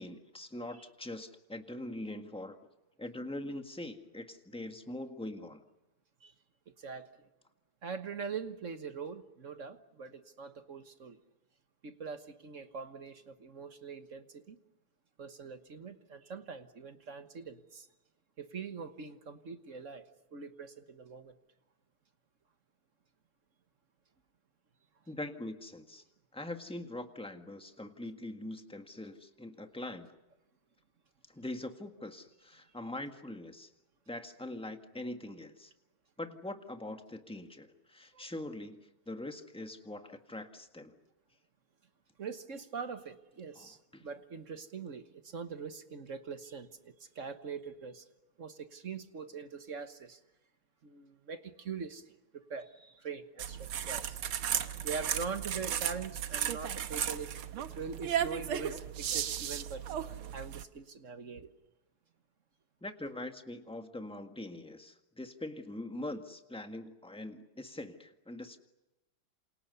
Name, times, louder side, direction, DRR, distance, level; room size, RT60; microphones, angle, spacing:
voice 1, 0.0-2.6 3.0-5.6 25.1-26.0 26.3-30.2 31.3-33.7 34.1-35.7 36.2-41.0 43.6-43.7 62.8-68.6, left 1 dB, 5° left, 1.4 m, -43 dB
voice 2, 6.8-7.3 7.8-11.2 11.8-14.6 15.2-17.9 18.4-21.3 38.1-38.2 42.2-48.1 48.4-50.2 50.8-54.2 54.8-59.8 60.3-61.5, right 5 dB, 40° right, 1.3 m, -43 dB
sound 1, 53.4-60.6, right 9 dB, 70° right, 1.9 m, -35 dB
28.5 x 27.5 x 6.9 m
omnidirectional pair, 2.4 m